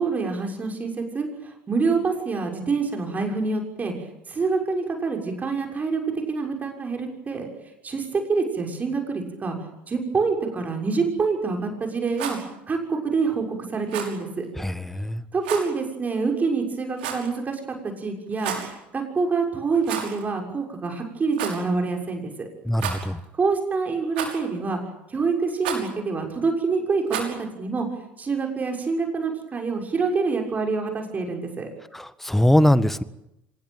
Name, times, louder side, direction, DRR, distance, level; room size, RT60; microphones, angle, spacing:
voice 1, 0.0-3.9 4.3-6.0 6.3-7.5 7.8-12.4 12.7-14.4 15.3-22.5 23.3-24.8 25.1-27.9 28.2-31.7, right 4 dB, 30° right, 2 dB, 6.5 m, -26 dB
Rattle, 12.0-12.4 13.9-14.2 15.4-15.7 17.0-17.4 18.3-18.7 19.8-20.2 20.5-20.6 21.3-21.6 22.7-23.2 24.1-24.6 25.6-25.9 27.1-27.4, right 8 dB, 75° right, 6.0 m, -31 dB
voice 2, 14.6-15.2 22.7-23.2 31.9-33.0, left 1 dB, 5° left, 14 dB, 1.6 m, -21 dB
26.0 x 20.0 x 9.2 m, 0.87 s
hypercardioid pair, 70°, 6 cm